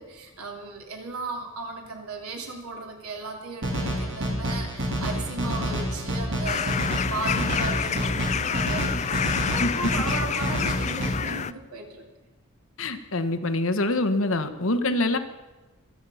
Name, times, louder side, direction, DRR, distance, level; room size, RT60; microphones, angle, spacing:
voice 1, 0.0-6.8 7.1-12.1, right 3 dB, 90° right, 2 dB, 3.1 m, -36 dB
sound 1, 3.6-11.1, equal, 60° right, 3.6 m, -28 dB
sound 2, 6.5-11.5, left 7 dB, 30° left, 0.4 m, -28 dB
voice 2, 12.8-15.2, left 2 dB, 65° left, 9 dB, 1.3 m, -25 dB
25.0 x 8.6 x 5.6 m, 1.1 s
head